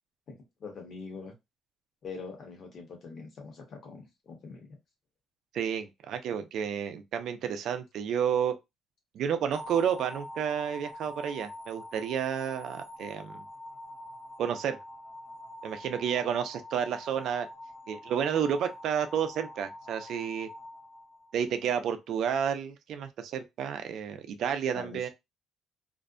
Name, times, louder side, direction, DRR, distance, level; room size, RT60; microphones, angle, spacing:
voice 1, 0.6-1.3 2.0-4.8 24.7-25.1, left 4 dB, 50° left, 1.1 m, -43 dB
voice 2, 5.5-8.5 9.1-13.4 14.4-14.8 15.6-17.5 17.9-20.5 21.3-25.1, right 8 dB, 65° right, 0.4 m, -31 dB
sound 1, 9.5-21.7, left 1 dB, 30° right, 1.0 m, -45 dB
2.5 x 2.1 x 2.4 m
cardioid pair, 135°, 0 cm